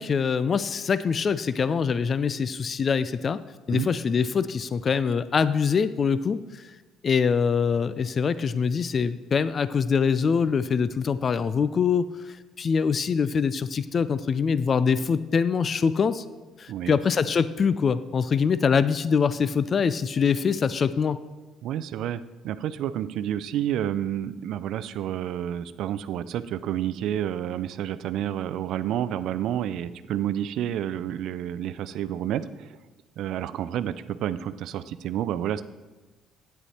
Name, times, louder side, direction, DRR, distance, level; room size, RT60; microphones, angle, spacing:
voice 1, 0.0-3.4 3.7-6.4 7.0-16.2 16.6-21.2, left 6 dB, 45° left, 15 dB, 0.4 m, -24 dB
voice 2, 16.7-17.0 21.6-32.7 33.2-35.6, right 11 dB, 75° right, 14 dB, 0.4 m, -30 dB
9.7 x 8.2 x 4.3 m, 1.2 s
supercardioid pair, 80°, 0 cm